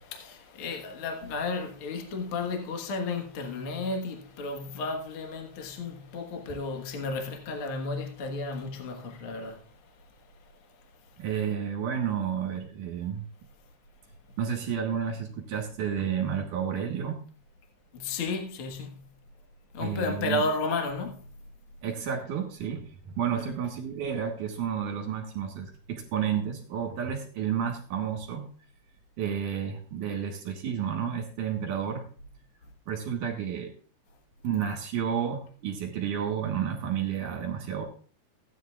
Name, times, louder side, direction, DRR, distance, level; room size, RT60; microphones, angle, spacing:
voice 1, 0.1-11.2 14.3-14.4 16.2-16.3 17.9-19.1 19.7-21.3 23.3-23.5, left 3 dB, 65° left, 1.3 m, -33 dB
voice 2, 11.2-13.3 14.4-17.2 19.8-20.4 21.8-28.5 29.2-32.1 32.9-33.7 34.4-37.9, right 8 dB, 65° right, 2.6 m, -31 dB
16.0 x 9.9 x 2.4 m
omnidirectional pair, 4.8 m